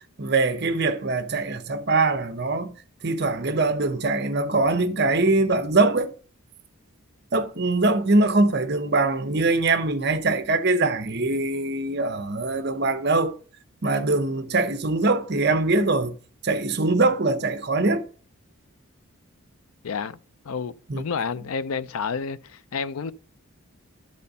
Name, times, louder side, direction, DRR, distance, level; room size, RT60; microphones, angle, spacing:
voice 1, 0.2-2.7 3.0-6.1 7.3-13.3 13.8-16.1 16.4-18.0 20.9-21.0, right 3 dB, 50° right, 0.8 m, -22 dB
voice 2, 19.8-20.2 20.4-23.1, left 5 dB, 75° left, 0.5 m, -30 dB
12.0 x 4.2 x 5.3 m
head